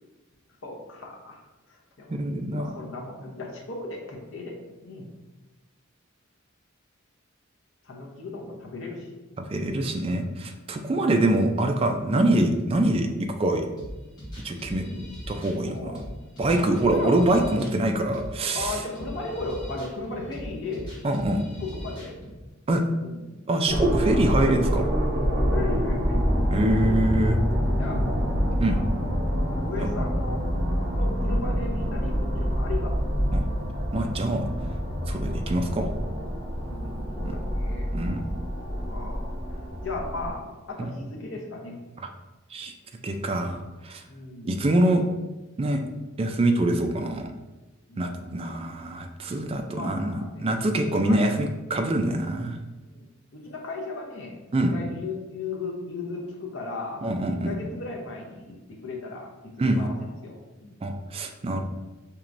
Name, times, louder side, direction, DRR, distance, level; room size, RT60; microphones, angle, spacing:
voice 1, 0.6-1.4 1.7-5.1 7.8-9.1 10.9-11.3 14.8-15.1 15.6-16.0 16.5-17.1 18.5-21.0 21.6-22.2 23.0-23.2 25.2-26.2 27.6-28.3 29.6-30.4 30.9-33.1 36.5-37.9 38.9-39.3 39.8-41.8 44.1-44.6 47.9-48.2 49.7-50.5 50.8-51.3 52.9-53.0 53.3-57.0 57.3-60.7, left 3 dB, 65° left, -1 dB, 0.8 m, -36 dB
voice 2, 2.1-2.7 9.4-13.1 13.4-13.6 14.4-14.8 15.3-16.0 16.4-18.8 21.0-21.4 22.7-22.8 23.5-24.9 26.5-27.4 28.6-28.8 29.8-29.9 33.3-33.5 33.9-34.5 35.1-35.9 37.2-37.4 37.9-38.2 40.8-40.9 42.5-42.7 43.0-43.6 43.8-44.0 44.4-45.0 45.6-45.8 46.2-47.3 48.0-52.6 54.5-54.8 57.0-57.5 59.6-59.8 60.8-61.6, right 1 dB, 30° right, 4 dB, 0.3 m, -24 dB
sound 1, 13.8-22.4, equal, 20° left, 1.4 m, -40 dB
sound 2, 23.7-40.3, equal, 45° right, 0.7 m, -26 dB
4.5 x 2.9 x 2.5 m, 1.1 s
head